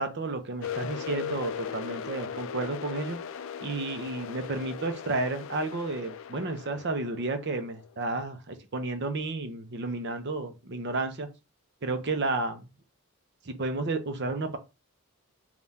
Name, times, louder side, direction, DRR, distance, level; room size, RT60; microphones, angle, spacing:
voice 1, 0.0-3.2 3.6-11.3 11.8-12.7 13.4-14.6, right 3 dB, 50° right, 0.7 m, -32 dB
sound 1, 0.6-8.2, left 7 dB, 60° left, 0.3 m, -38 dB
3.5 x 2.4 x 4.1 m
head